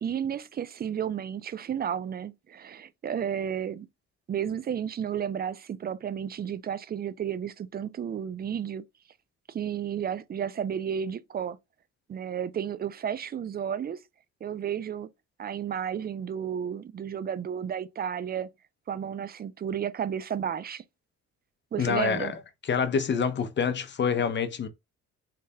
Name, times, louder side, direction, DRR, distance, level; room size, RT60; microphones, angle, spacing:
voice 1, 0.0-3.9 4.3-8.8 9.5-11.6 12.1-14.0 14.4-15.1 15.4-18.5 18.9-20.8 21.7-22.3, right 8 dB, 30° right, 0.4 m, -32 dB
voice 2, 21.8-22.4 22.7-24.7, left 6 dB, 35° left, 0.7 m, -26 dB
3.3 x 3.3 x 2.8 m
cardioid pair, 90°, 30 cm